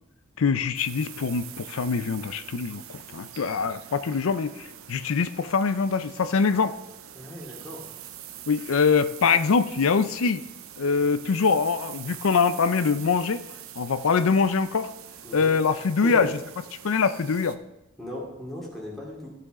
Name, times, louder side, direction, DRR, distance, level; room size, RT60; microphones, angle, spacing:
voice 1, 0.4-6.7 8.5-10.4 10.8-13.4 13.8-14.9 15.3-16.3 16.8-17.6, left 5 dB, 80° left, 13 dB, 0.5 m, -23 dB
sound 1, 0.7-17.6, right 10 dB, 90° right, 0.7 m, -44 dB
voice 2, 7.1-7.9 15.2-15.5 16.0-16.3 18.0-19.3, left 1 dB, ahead, -5 dB, 2.4 m, -37 dB
15.0 x 5.9 x 3.7 m, 0.95 s
head